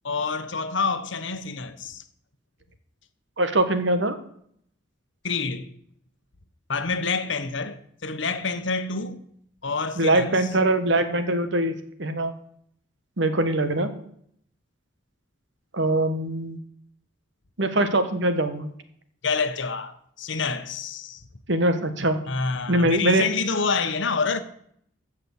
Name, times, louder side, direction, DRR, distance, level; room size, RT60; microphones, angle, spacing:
voice 1, 0.0-2.0 5.2-5.7 6.7-9.2 9.6-10.4 19.2-21.2 22.3-24.4, left 4 dB, 60° left, 1.1 m, -27 dB
voice 2, 3.4-4.2 10.0-12.3 13.2-13.9 15.7-16.6 17.6-18.7 21.5-22.2 22.7-23.2, right 1 dB, 60° right, 1.4 m, -22 dB
15.0 x 5.8 x 8.3 m
head